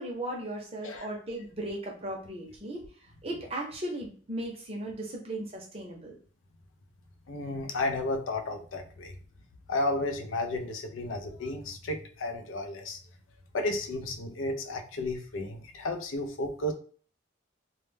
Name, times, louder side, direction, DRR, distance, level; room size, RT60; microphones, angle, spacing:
voice 1, 0.0-2.8 3.2-6.1, right 1 dB, 30° right, 0 dB, 0.6 m, -36 dB
voice 2, 7.3-9.1 9.7-13.0 13.5-16.7, left 2 dB, 80° left, 6 dB, 0.4 m, -33 dB
2.1 x 2.1 x 3.2 m, 0.43 s
head